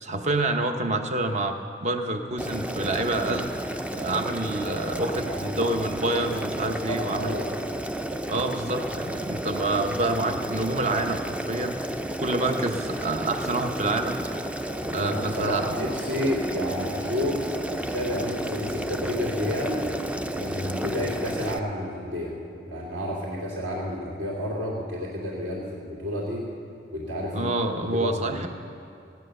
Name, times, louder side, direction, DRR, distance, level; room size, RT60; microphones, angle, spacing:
voice 1, 0.0-3.5 3.9-7.4 8.3-11.8 12.2-14.2 14.9-15.6 27.3-28.5, right 2 dB, 40° right, 6 dB, 0.9 m, -27 dB
Boiling, 2.4-21.6, right 1 dB, 5° right, 0.4 m, -32 dB
voice 2, 5.2-5.6 6.8-7.5 14.9-17.4 17.7-19.9 20.3-22.3 22.6-26.4 26.9-27.5 27.8-28.5, left 1 dB, 75° right, -6 dB, 3.0 m, -30 dB
16.5 x 9.5 x 6.6 m, 2.5 s
head